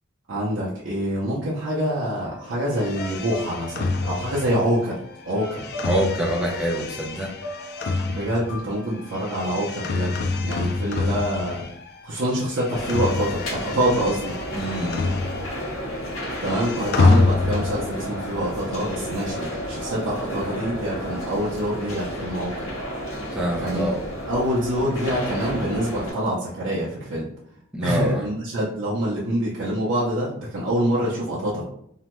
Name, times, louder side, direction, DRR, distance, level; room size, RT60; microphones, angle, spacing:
voice 1, 0.3-5.7 8.1-10.2 10.4-11.7 12.0-14.3 16.4-22.7 23.6-23.9 24.3-27.3 27.8-31.6, equal, 65° right, -6 dB, 0.6 m, -26 dB
sound 1, 2.1-10.4, left 1 dB, 70° left, 0.7 m, -41 dB
sound 2, 2.7-12.0 12.3-15.7 16.0-17.9, left 3 dB, 55° left, 0.3 m, -27 dB
voice 2, 5.8-7.3 14.5-15.1 23.3-24.0 27.7-28.3, right 1 dB, 5° right, -2 dB, 0.5 m, -26 dB
sound 3, 12.7-26.1, equal, 90° left, 1.0 m, -32 dB
2.7 x 2.1 x 2.9 m, 0.72 s
head